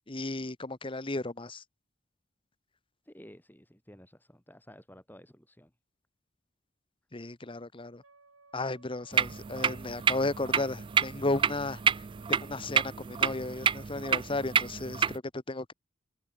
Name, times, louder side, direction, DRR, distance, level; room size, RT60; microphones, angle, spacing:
voice 1, 0.1-1.6 7.1-8.0 8.5-11.8 12.3-15.0 15.3-15.7, left 2 dB, 25° left, 1.1 m, -34 dB
voice 2, 3.0-5.7, equal, 10° left, 6.8 m, -53 dB
Wind instrument woodwind instrument, 8.0-14.6, right 3 dB, 85° right, 6.3 m, -61 dB
sound 1, 9.1-15.2, right 7 dB, 25° right, 0.3 m, -29 dB
head